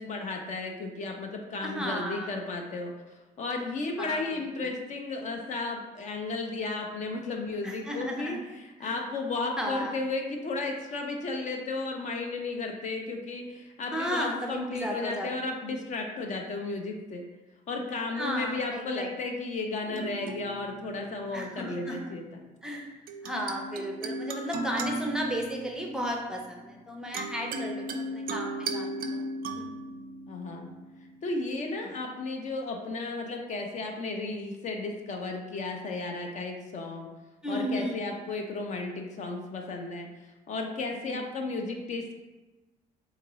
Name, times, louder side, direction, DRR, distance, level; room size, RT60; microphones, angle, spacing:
voice 1, 0.0-17.2 17.7-22.2 30.3-30.7 31.2-37.1 37.5-42.2, left 3 dB, 45° left, 2 dB, 0.5 m, -34 dB
voice 2, 1.6-2.3 4.0-4.7 7.6-8.4 8.8-9.0 9.6-9.9 13.9-15.3 18.2-19.1 21.3-22.1 22.6-22.9 23.2-29.2 29.6-29.7 31.8-31.9 37.4-38.1 41.0-41.2, equal, 5° right, 0 dB, 0.5 m, -34 dB
sound 1, 19.9-21.7 23.1-31.6, right 1 dB, 60° right, 0.4 m, -37 dB
3.7 x 2.5 x 3.0 m, 1.1 s
cardioid pair, 110°, 17 cm